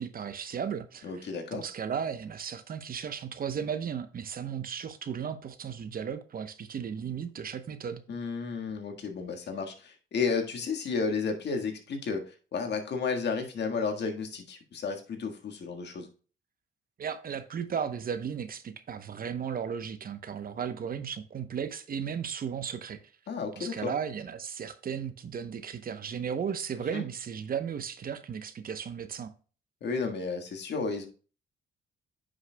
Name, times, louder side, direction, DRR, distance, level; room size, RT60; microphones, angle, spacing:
voice 1, 0.0-8.0 17.0-23.0 23.5-29.3, right 7 dB, 45° right, 0.8 m, -35 dB
voice 2, 1.0-1.6 8.1-12.2 12.5-16.1 23.3-23.9 26.9-27.0 29.8-31.1, left 5 dB, 60° left, 1.6 m, -32 dB
9.5 x 6.4 x 2.2 m
cardioid pair, 90°, 20 cm